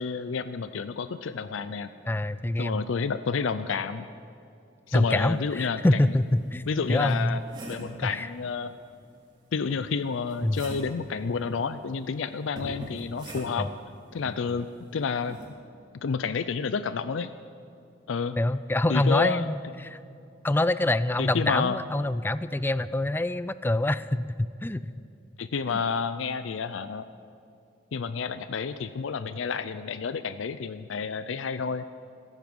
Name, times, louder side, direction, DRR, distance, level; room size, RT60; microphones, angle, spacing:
voice 1, 0.0-1.9 2.6-4.1 4.9-6.1 6.7-8.7 9.5-13.7 14.1-14.7 14.9-15.4 16.0-17.3 18.1-18.4 18.9-19.5 21.2-21.8 25.4-27.0 27.9-31.8, left 5 dB, 80° left, 12 dB, 0.5 m, -30 dB
voice 2, 2.1-2.8 4.9-6.6 6.9-7.4 8.0-8.3 10.4-10.6 13.6-13.7 18.4-20.0 20.4-24.8 25.7-25.8, left 1 dB, 10° left, 15 dB, 0.3 m, -25 dB
sound 1, 5.7-5.8 6.4-8.0 9.7-11.0 12.6-13.8 15.3-15.5, right 1 dB, 25° right, 4.3 m, -42 dB
15.5 x 15.0 x 5.4 m, 2.6 s
head